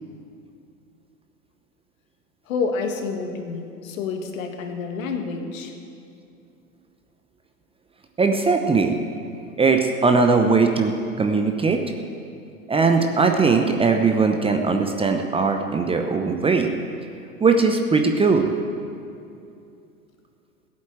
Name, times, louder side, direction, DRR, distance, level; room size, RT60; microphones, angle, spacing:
voice 1, 2.5-5.7, left 4 dB, 60° left, 5 dB, 2.1 m, -28 dB
voice 2, 8.2-9.0 9.6-11.8 12.7-16.7 17.4-18.5, right 4 dB, 10° right, 4 dB, 0.8 m, -19 dB
15.5 x 8.5 x 8.6 m, 2.5 s
hypercardioid pair, 95°, 45 cm